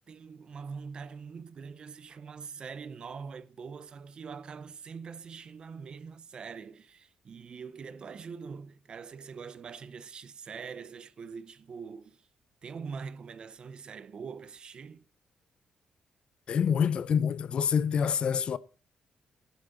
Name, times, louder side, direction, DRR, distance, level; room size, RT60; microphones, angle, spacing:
voice 1, 0.1-12.3 12.6-15.1, right 5 dB, 40° right, 0.7 m, -43 dB
voice 2, 16.5-18.6, left 7 dB, 45° left, 0.6 m, -26 dB
14.5 x 11.5 x 3.9 m
cardioid pair, 140°, 2 cm